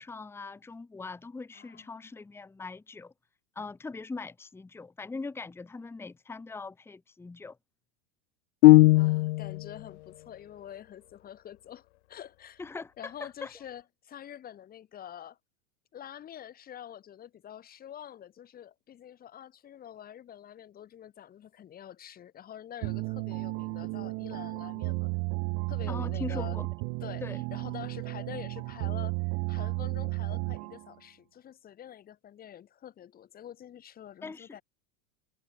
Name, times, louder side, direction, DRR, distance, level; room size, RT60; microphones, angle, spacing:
voice 1, 0.0-3.1 3.5-7.6 9.0-9.1 12.6-13.5 25.9-26.7 27.2-27.4 34.2-34.6, left 3 dB, 5° left, 1.1 m, -41 dB
voice 2, 1.5-2.1 8.9-12.6 13.0-15.4 15.9-25.1 25.7-26.6 27.0-29.2 29.5-34.6, left 10 dB, 25° left, 2.4 m, -46 dB
sound 1, 8.6-9.7, left 19 dB, 85° left, 0.5 m, -18 dB
sound 2, 22.8-30.9, right 32 dB, 45° right, 0.9 m, -33 dB
supercardioid pair, 140°, 34 cm